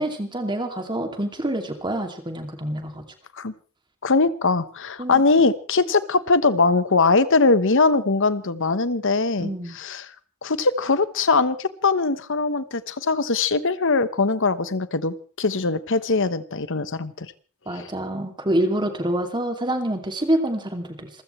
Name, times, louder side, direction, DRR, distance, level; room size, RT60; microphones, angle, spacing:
voice 1, 0.0-3.0 5.0-5.2 9.4-9.8 17.7-21.1, right 1 dB, 20° right, 5 dB, 2.7 m, -26 dB
voice 2, 4.0-10.1 10.4-17.3 17.7-17.9, left 3 dB, 60° left, 14 dB, 1.2 m, -21 dB
27.5 x 15.5 x 3.3 m, 0.38 s
head